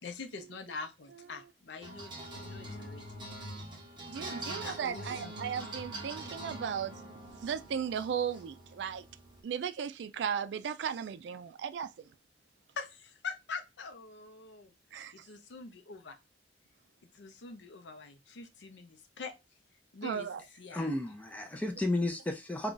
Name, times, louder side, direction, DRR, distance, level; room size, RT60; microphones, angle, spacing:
voice 1, 0.0-3.2 4.1-5.3 12.8-16.2 17.1-19.3 19.9-20.3 20.6-20.9, left 4 dB, 85° left, 0.6 m, -44 dB
sound 1, 1.8-9.4, right 1 dB, 25° right, 0.9 m, -44 dB
voice 2, 4.1-6.9 7.4-9.1 9.4-12.1 14.9-15.3 20.0-20.4, right 7 dB, 75° right, 0.3 m, -36 dB
voice 3, 20.7-22.7, left 1 dB, 10° left, 0.5 m, -33 dB
2.5 x 2.3 x 3.8 m
head